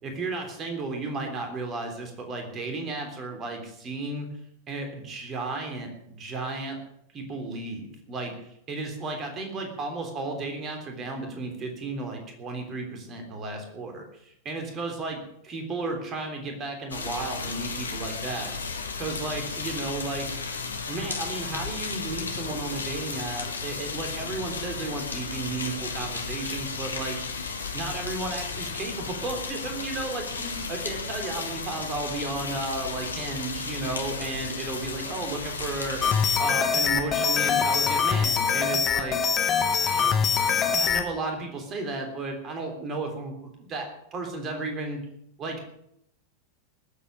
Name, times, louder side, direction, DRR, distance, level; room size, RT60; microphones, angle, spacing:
voice 1, 0.0-4.3 4.7-6.8 7.1-18.5 19.0-20.3 20.9-27.2 27.7-36.0 36.4-39.2 39.8-40.2 40.7-43.9 44.1-45.0 45.4-45.6, right 3 dB, 30° right, 4 dB, 3.4 m, -34 dB
sound 1, 16.9-36.4, left 4 dB, 75° left, 1.7 m, -34 dB
sound 2, 36.0-41.0, left 6 dB, 25° left, 1.6 m, -23 dB
20.0 x 8.4 x 6.4 m, 0.74 s
figure-of-eight pair, 90°, 0 cm